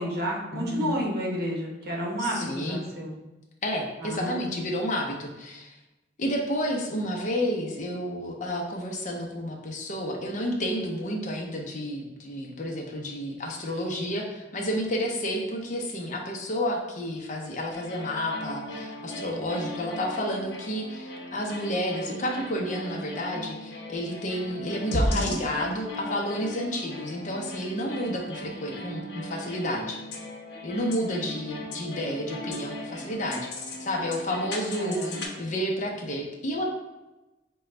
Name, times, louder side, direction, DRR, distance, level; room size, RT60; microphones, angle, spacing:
voice 1, 0.0-3.1 4.0-4.6 25.1-25.3 34.8-35.2, equal, 60° right, -2 dB, 1.0 m, -31 dB
voice 2, 0.5-1.1 2.2-2.9 3.6-5.8 6.2-30.0 30.6-33.5 33.8-36.6, equal, 45° left, 0 dB, 0.6 m, -31 dB
sound 1, 17.7-35.3, equal, 70° left, 0.9 m, -36 dB
4.9 x 2.3 x 3.2 m, 1.0 s
head